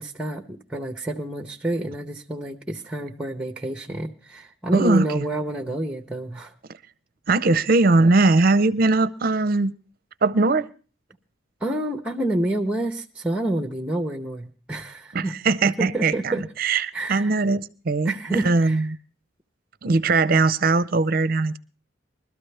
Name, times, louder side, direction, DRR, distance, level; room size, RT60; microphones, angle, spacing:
voice 1, 0.0-6.5 11.6-15.3 15.6-16.5 16.9-17.4 18.0-18.9, right 1 dB, 5° right, 4 dB, 0.8 m, -28 dB
voice 2, 4.7-5.3 7.3-9.7 10.2-10.7 15.1-16.3 16.6-18.9 19.8-21.6, right 3 dB, 50° right, 17 dB, 0.6 m, -20 dB
21.5 x 13.0 x 3.3 m, 0.37 s
head